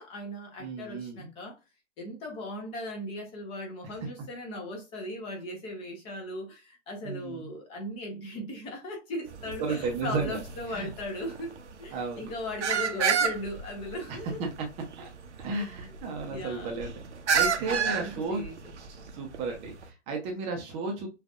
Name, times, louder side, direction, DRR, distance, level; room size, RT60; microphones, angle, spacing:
voice 1, 0.0-1.6 2.0-11.5 11.8-14.4 15.5-15.7 16.3-16.7 17.7-18.5, left 1 dB, 15° left, 0.8 m, -38 dB
voice 2, 0.6-1.3 3.8-3.9 7.0-7.5 9.6-10.4 10.7-10.9 11.9-12.3 14.1-14.5 15.0-15.1 15.4-17.0 17.3-18.4 18.8-21.1, right 4 dB, 15° right, 0.8 m, -34 dB
sound 1, 9.3-19.9, right 7 dB, 70° right, 0.9 m, -32 dB
6.2 x 2.6 x 2.4 m
figure-of-eight pair, 135°, 36 cm